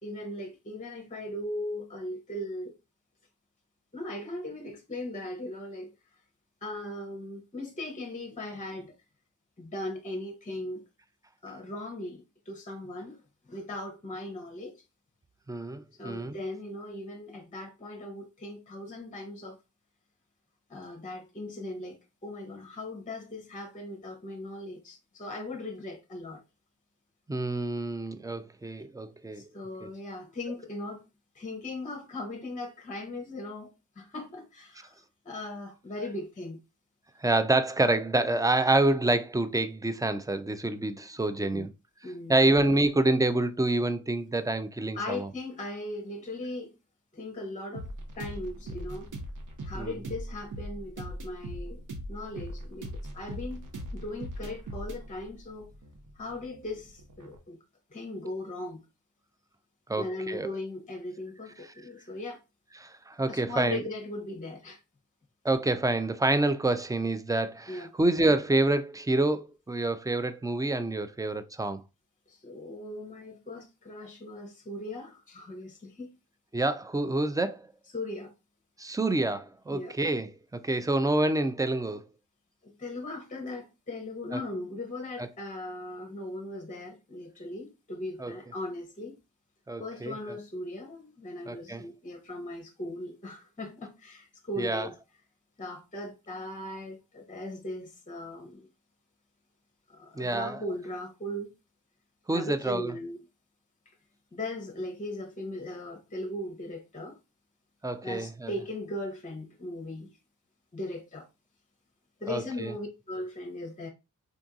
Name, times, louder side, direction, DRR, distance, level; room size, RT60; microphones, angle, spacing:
voice 1, 0.0-2.7 3.9-5.9 6.6-8.9 9.6-10.8 11.4-13.2 13.5-14.8 16.0-19.6 20.7-26.4 29.3-31.0 31.3-33.7 34.0-36.6 41.5-41.7 42.0-42.5 44.9-46.7 47.1-47.9 48.2-49.1 49.7-51.8 52.1-53.6 53.9-55.7 56.2-57.6 57.9-58.8 60.0-62.4 63.3-64.8 67.7-67.9 72.3-76.1 77.9-78.3 79.7-79.9 82.6-89.2 89.8-94.9 95.6-98.7 99.9-101.5 102.3-103.2 103.9-104.0 104.3-107.2 108.0-110.2 110.7-111.3 112.2-113.9, left 1 dB, 20° left, 0.7 m, -38 dB
voice 2, 15.5-16.4 27.3-29.5 29.8-29.9 37.2-41.7 42.3-45.3 49.7-49.9 59.9-60.5 62.8-63.8 65.4-71.8 76.5-77.7 78.8-82.1 84.3-84.4 88.2-88.3 89.7-90.1 91.5-91.8 94.6-94.9 100.2-100.6 102.3-102.9 107.8-108.5 112.3-112.7, right 2 dB, 10° right, 0.3 m, -27 dB
sound 1, 47.7-57.4, right 1 dB, 55° right, 0.8 m, -40 dB
3.7 x 2.6 x 2.3 m
cardioid pair, 50°, 36 cm